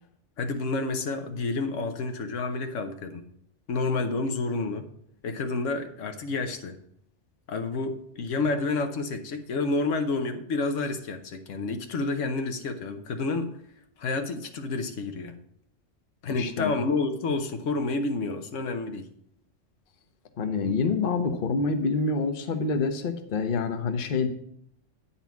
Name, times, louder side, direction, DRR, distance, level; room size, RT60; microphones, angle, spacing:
voice 1, 0.4-3.2 3.7-4.9 5.2-6.8 7.5-13.5 14.0-15.4 16.2-19.1, left 3 dB, 80° left, 7 dB, 1.2 m, -29 dB
voice 2, 16.3-16.7 20.4-24.3, left 4 dB, 50° left, 8 dB, 0.9 m, -27 dB
9.1 x 4.2 x 7.0 m, 0.70 s
omnidirectional pair, 1.3 m